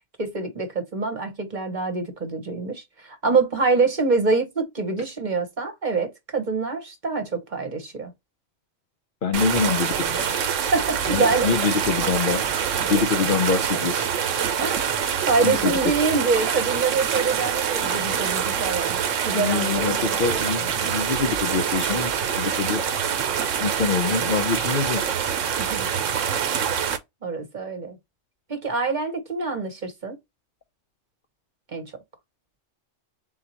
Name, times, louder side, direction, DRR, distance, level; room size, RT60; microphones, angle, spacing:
voice 1, 0.2-8.1 10.4-11.5 14.6-14.9 15.3-19.0 19.2-20.2 25.6-25.9 27.2-28.0 28.5-30.2 31.7-31.9, right 4 dB, 40° right, 1.0 m, -25 dB
voice 2, 9.2-10.2 11.1-12.4 12.9-14.1 15.4-15.9 19.3-22.8 23.6-25.0, left 5 dB, 55° left, 0.7 m, -25 dB
sound 1, 9.3-27.0, right 8 dB, 85° right, 1.1 m, -25 dB
4.0 x 3.8 x 2.9 m
omnidirectional pair, 1.3 m